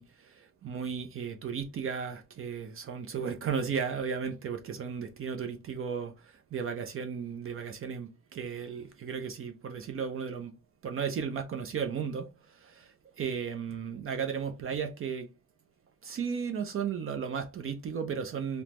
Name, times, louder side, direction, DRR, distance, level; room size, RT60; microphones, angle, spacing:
voice 1, 0.0-10.5 10.8-15.3 16.0-18.6, right 6 dB, 45° right, 0.5 m, -35 dB
3.3 x 2.0 x 2.9 m
cardioid pair, 90°, 30 cm